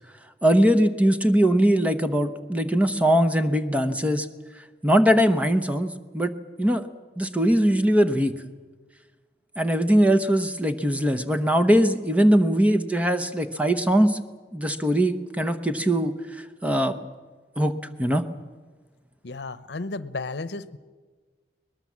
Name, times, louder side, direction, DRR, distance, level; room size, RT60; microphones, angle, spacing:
voice 1, 0.4-4.3 4.8-6.3 6.6-6.9 7.2-8.3 9.6-14.2 14.5-16.1 16.6-17.0 17.6-17.7 18.0-18.2, equal, 10° right, 8 dB, 0.9 m, -21 dB
voice 2, 19.2-20.8, left 3 dB, 75° left, 15 dB, 0.8 m, -33 dB
22.5 x 20.0 x 7.4 m, 1.4 s
head